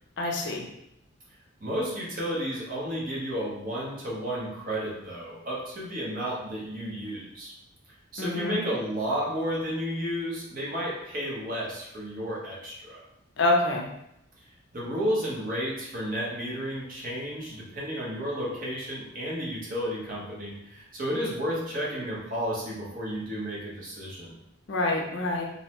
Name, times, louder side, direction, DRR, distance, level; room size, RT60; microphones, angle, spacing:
voice 1, 0.2-0.7 8.2-8.6 13.4-13.9 24.7-25.4, left 2 dB, 60° left, 0 dB, 0.4 m, -26 dB
voice 2, 1.6-7.5 8.1-13.0 14.7-24.3, equal, 40° right, -5 dB, 0.7 m, -32 dB
2.6 x 2.1 x 2.9 m, 0.80 s
head